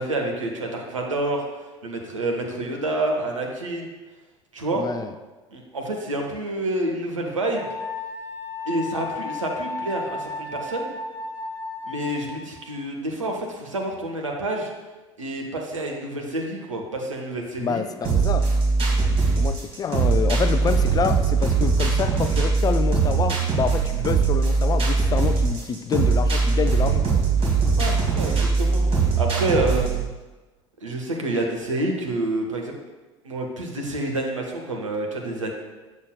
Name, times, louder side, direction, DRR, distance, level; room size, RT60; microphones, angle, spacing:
voice 1, 0.0-3.9 4.5-4.9 5.5-7.7 8.7-10.9 11.9-14.7 15.2-17.8 27.8-28.8 29.2-29.9 30.8-32.7 33.2-35.5, right 1 dB, 80° right, 1 dB, 0.8 m, -28 dB
voice 2, 4.7-5.1 17.6-18.5 19.4-27.2, left 7 dB, 25° left, 10 dB, 0.3 m, -27 dB
Wind instrument woodwind instrument, 7.6-12.5, left 3 dB, 10° right, 1.3 m, -34 dB
sound 1, 18.0-30.1, right 4 dB, 35° right, 1.7 m, -21 dB
7.0 x 6.3 x 2.2 m, 1.2 s
figure-of-eight pair, 65°, 16 cm